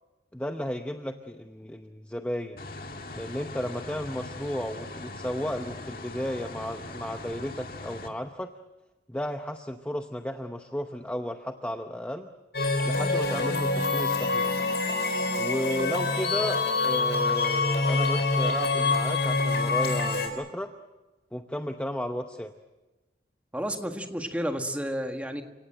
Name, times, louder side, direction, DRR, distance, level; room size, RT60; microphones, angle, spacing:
voice 1, 0.3-2.6 3.1-8.5 9.1-12.3 12.8-14.5 15.4-20.7 21.3-22.5, equal, 10° left, 6 dB, 0.7 m, -33 dB
sound 1, 2.6-8.1, left 2 dB, 55° left, 2.0 m, -40 dB
sound 2, 12.5-20.3, left 3 dB, 75° left, 4.1 m, -26 dB
voice 2, 23.5-25.4, equal, 10° right, 4 dB, 1.7 m, -31 dB
30.0 x 17.5 x 7.9 m, 1.1 s
head